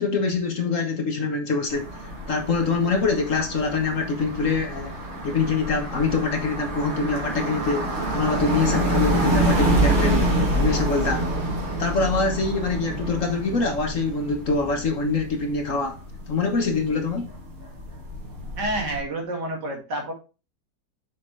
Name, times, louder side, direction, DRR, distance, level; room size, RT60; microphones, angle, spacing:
voice 1, 0.0-1.9 2.3-4.9 5.2-7.8 8.1-11.3 11.8-16.0 16.3-17.2, left 4 dB, 50° left, 1.4 m, -24 dB
sound 1, 1.7-19.0, right 1 dB, 40° right, 2.5 m, -27 dB
voice 2, 18.6-20.1, right 1 dB, 70° right, 2.7 m, -29 dB
6.5 x 5.8 x 3.2 m
omnidirectional pair, 1.9 m